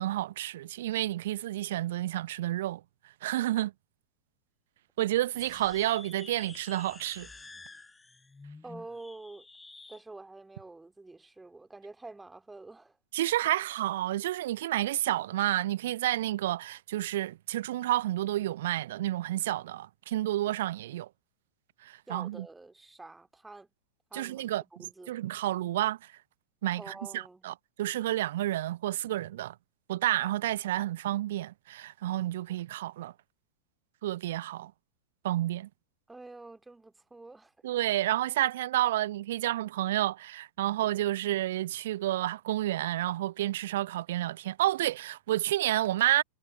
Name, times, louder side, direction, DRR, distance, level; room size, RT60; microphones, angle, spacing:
voice 1, 0.0-2.8 3.2-3.7 5.0-7.3 13.1-21.1 21.8-22.5 24.1-26.1 26.6-29.5 29.9-33.1 34.0-34.7 35.2-35.7 37.6-46.2, right 14 dB, 55° right, 0.7 m, -30 dB
sound 1, 5.3-10.0, left 3 dB, 10° left, 7.9 m, -50 dB
voice 2, 8.6-9.5 9.9-12.9 22.1-23.7 24.1-24.4 24.8-25.2 26.8-27.4 36.1-37.5, right 2 dB, 10° right, 2.5 m, -47 dB
figure-of-eight pair, 90°, 0 cm